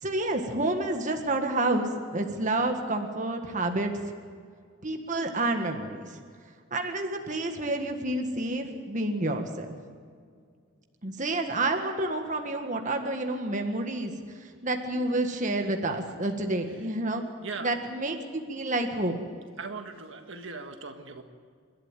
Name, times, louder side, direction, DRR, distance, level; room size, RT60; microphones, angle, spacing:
voice 1, 0.0-3.9 4.8-6.2 6.7-9.7 11.0-14.1 14.4-17.2 17.6-19.2, right 2 dB, 35° right, 4 dB, 1.7 m, -29 dB
voice 2, 16.7-17.8 19.6-21.2, right 4 dB, 65° right, 5 dB, 1.7 m, -40 dB
28.0 x 12.5 x 9.0 m, 2.1 s
head